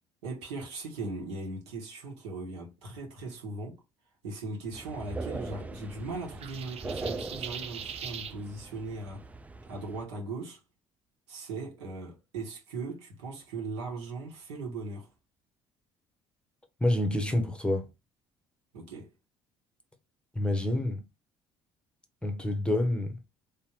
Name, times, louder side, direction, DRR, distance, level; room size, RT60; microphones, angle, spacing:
voice 1, 0.2-3.8 4.2-9.3 9.7-10.6 11.3-15.1 18.7-19.1, right 3 dB, 75° right, 1.4 m, -39 dB
sound 1, 4.7-10.1, right 3 dB, 10° right, 0.4 m, -41 dB
sound 2, 6.4-8.4, right 7 dB, 45° right, 0.7 m, -40 dB
voice 2, 16.8-17.9 20.3-21.1 22.2-23.2, left 1 dB, 5° left, 0.8 m, -28 dB
3.4 x 3.0 x 3.0 m
figure-of-eight pair, 55°, 15 cm